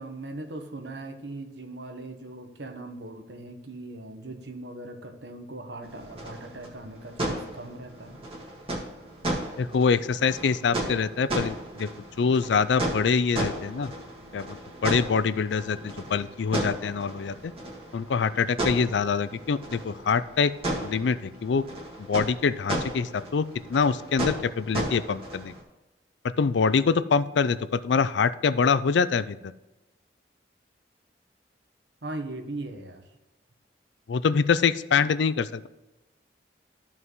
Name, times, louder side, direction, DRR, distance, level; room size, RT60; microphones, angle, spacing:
voice 1, 0.0-8.2 18.6-18.8 32.0-33.0, right 2 dB, 75° right, 6 dB, 1.1 m, -39 dB
sound 1, 5.8-25.6, right 1 dB, 30° right, 1.7 m, -35 dB
voice 2, 9.6-11.9 12.2-13.9 14.3-14.5 14.8-17.5 17.9-20.5 20.8-21.6 22.0-25.5 26.4-29.5 34.1-35.7, left 5 dB, 80° left, 15 dB, 0.4 m, -25 dB
13.5 x 5.5 x 3.1 m, 1.1 s
head